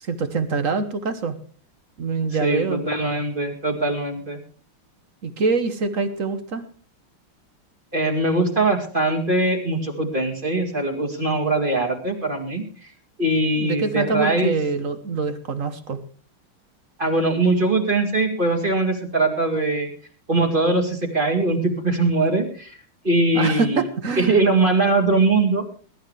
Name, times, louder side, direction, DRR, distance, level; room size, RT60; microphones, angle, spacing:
voice 1, 0.0-1.4 2.0-2.8 5.2-6.6 13.6-16.0 23.3-24.4, right 4 dB, 45° right, 10 dB, 1.3 m, -25 dB
voice 2, 2.4-4.4 7.9-12.9 13.2-14.5 17.0-19.9 20.3-22.7 23.0-23.9 24.2-25.6, right 2 dB, 25° right, 3 dB, 2.2 m, -21 dB
21.5 x 12.0 x 3.3 m, 0.39 s
omnidirectional pair, 2.4 m